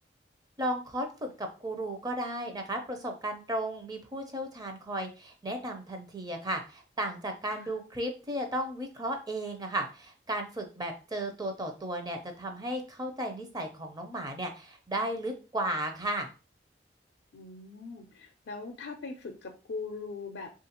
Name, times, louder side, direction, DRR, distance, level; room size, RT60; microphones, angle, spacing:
voice 1, 0.6-16.3, right 1 dB, 20° right, 5 dB, 0.5 m, -34 dB
voice 2, 17.3-20.5, left 4 dB, 85° left, 3 dB, 0.5 m, -41 dB
3.4 x 2.4 x 2.9 m, 0.32 s
head